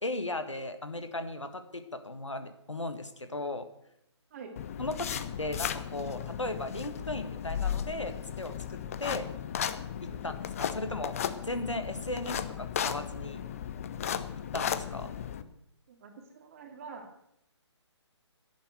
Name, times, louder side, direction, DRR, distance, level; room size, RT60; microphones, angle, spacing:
voice 1, 0.0-3.7 4.8-9.3 10.0-10.3 10.6-11.2 11.4-13.4 14.5-15.1, left 2 dB, 80° left, 9 dB, 1.8 m, -36 dB
sound 1, 4.6-15.4, left 9 dB, 30° left, 0.7 m, -35 dB
voice 2, 15.9-17.1, right 5 dB, 30° right, 4 dB, 2.4 m, -47 dB
11.5 x 10.5 x 8.0 m, 0.77 s
figure-of-eight pair, 140°, 15 cm